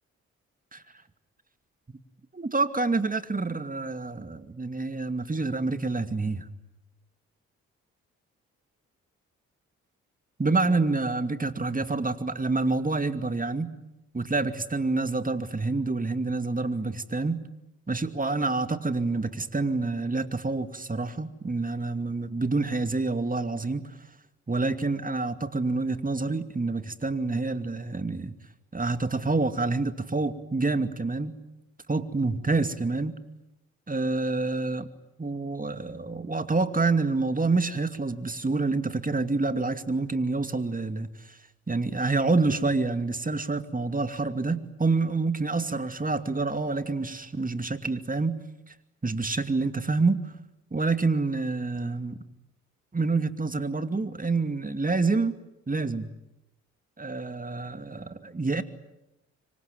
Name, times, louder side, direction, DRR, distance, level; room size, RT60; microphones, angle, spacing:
voice 1, 2.3-6.5 10.4-13.7 14.1-17.4 17.9-23.9 24.5-28.3 28.7-31.4 31.9-33.2 33.9-34.9 35.2-41.4 41.7-48.4 49.0-50.3 50.7-52.2 52.9-55.3 55.7-56.1 57.0-58.6, right 3 dB, 25° right, 10 dB, 2.5 m, -27 dB
26.0 x 24.5 x 9.3 m, 0.93 s
hypercardioid pair, 40°, 34 cm